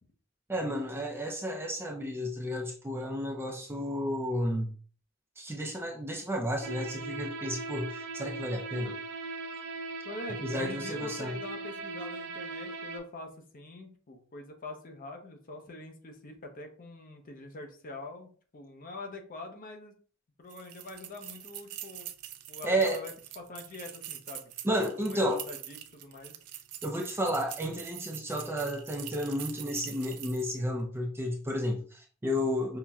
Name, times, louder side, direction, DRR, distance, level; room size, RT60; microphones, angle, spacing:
voice 1, 0.5-4.7 5.4-9.0 10.4-11.3 22.6-23.0 24.6-25.4 26.8-32.8, equal, 10° right, 1 dB, 0.4 m, -32 dB
sound 1, 6.6-13.0, right 3 dB, 50° right, 0.7 m, -39 dB
voice 2, 10.0-19.9 20.4-22.1 22.5-24.5 24.8-26.4, left 2 dB, 40° left, 4 dB, 0.6 m, -44 dB
sound 2, 20.5-30.6, right 12 dB, 85° right, 0.4 m, -44 dB
5.6 x 2.1 x 2.3 m, 0.43 s
head